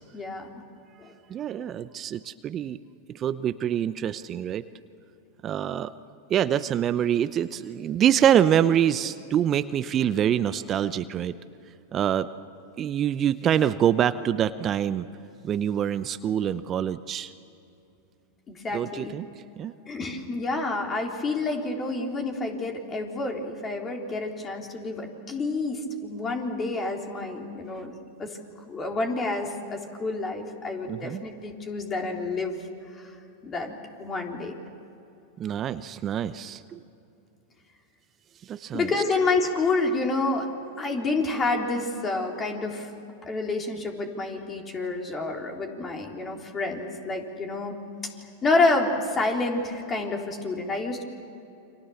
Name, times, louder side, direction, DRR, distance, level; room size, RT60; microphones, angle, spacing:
voice 1, 0.1-0.6 1.0-1.1 18.5-19.1 19.9-27.9 28.2-28.4 28.7-32.6 32.9-33.1 33.4-34.6 38.7-42.9 43.2-47.7 48.4-51.0, left 3 dB, 25° left, 2 dB, 3.7 m, -28 dB
voice 2, 1.3-2.8 3.1-4.7 5.4-5.9 6.3-11.3 11.9-12.3 12.8-15.1 15.4-17.3 18.7-19.3 19.6-19.7 27.7-27.8 30.9-31.2 35.4-36.8 38.4-38.9, right 10 dB, 35° right, 13 dB, 0.8 m, -25 dB
29.5 x 25.0 x 7.2 m, 2.8 s
hypercardioid pair, 100°, 0 cm